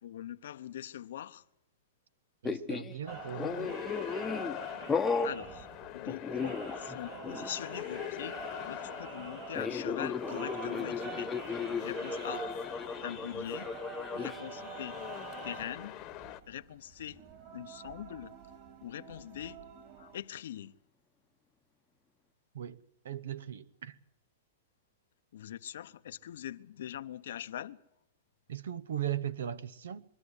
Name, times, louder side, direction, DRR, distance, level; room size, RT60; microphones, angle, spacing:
voice 1, 0.0-1.4 5.2-5.7 5.9-8.4 8.6-11.3 11.8-12.4 13.0-13.7 14.1-14.9 15.4-15.9 16.5-17.2 17.5-18.3 18.8-19.6 20.0-20.7 25.3-27.8, left 11 dB, 75° left, 0.8 m, -42 dB
sound 1, 2.4-3.0 3.4-4.6 4.9-5.4 6.1-7.0 7.2-7.5 9.6-14.4, left 5 dB, 10° left, 0.9 m, -35 dB
voice 2, 2.4-3.7 22.5-22.8 23.0-24.0 28.5-30.0, right 10 dB, 80° right, 0.7 m, -38 dB
sound 2, 3.1-16.4, left 13 dB, 35° left, 1.1 m, -43 dB
sound 3, 3.1-20.2, right 7 dB, 40° right, 4.3 m, -47 dB
23.5 x 12.5 x 9.8 m
hypercardioid pair, 140°, 0 cm